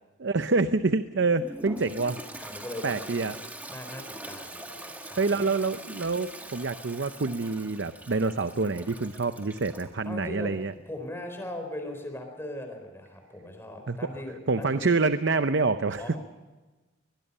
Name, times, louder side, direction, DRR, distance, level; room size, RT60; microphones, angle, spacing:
voice 1, 0.2-2.2 2.8-3.3 5.2-10.7 13.9-14.0 14.5-16.2, right 3 dB, 60° right, 11 dB, 0.7 m, -27 dB
Toilet flush, 1.4-9.9, right 1 dB, 10° right, 1.7 m, -43 dB
voice 2, 2.3-3.0 3.7-5.5 10.0-10.5 10.9-14.8 16.0-16.2, left 1 dB, 10° left, 4 dB, 4.3 m, -39 dB
22.5 x 21.5 x 5.5 m, 1.2 s
head